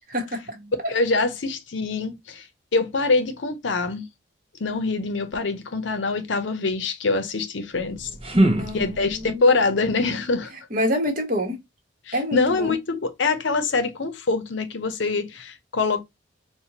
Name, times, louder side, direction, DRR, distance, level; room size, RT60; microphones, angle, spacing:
voice 1, 0.1-0.9 8.3-9.4 10.7-11.6 12.1-12.7, equal, 45° right, 1.1 m, -27 dB
voice 2, 0.9-2.5 2.7-4.1 4.6-8.1 8.7-10.5 12.1-16.0, left 3 dB, 70° left, 0.7 m, -24 dB
sound 1, 7.7-9.4, right 1 dB, 30° right, 0.7 m, -24 dB
4.3 x 2.2 x 2.8 m
head